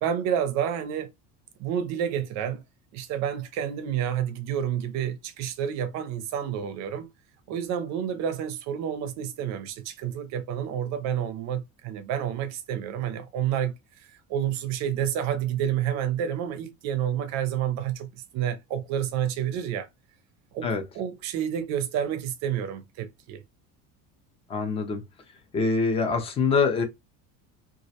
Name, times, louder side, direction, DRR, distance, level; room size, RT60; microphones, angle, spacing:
voice 1, 0.0-1.1 1.6-2.6 2.9-7.1 7.5-13.7 14.0-19.9 20.5-23.4, right 9 dB, 50° right, 0.5 m, -29 dB
voice 2, 24.5-25.0 25.5-26.8, left 4 dB, 20° left, 0.3 m, -24 dB
2.3 x 2.0 x 2.7 m
cardioid pair, 155°, 36 cm